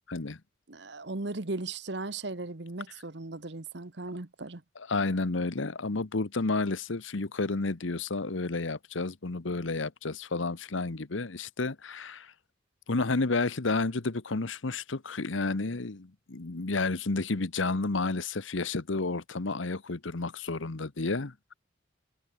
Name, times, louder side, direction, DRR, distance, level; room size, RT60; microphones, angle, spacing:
voice 1, 0.1-0.4 4.9-12.3 12.9-21.5, left 3 dB, 80° left, 1.1 m, -31 dB
voice 2, 0.7-4.6, right 2 dB, 60° right, 1.3 m, -37 dB
head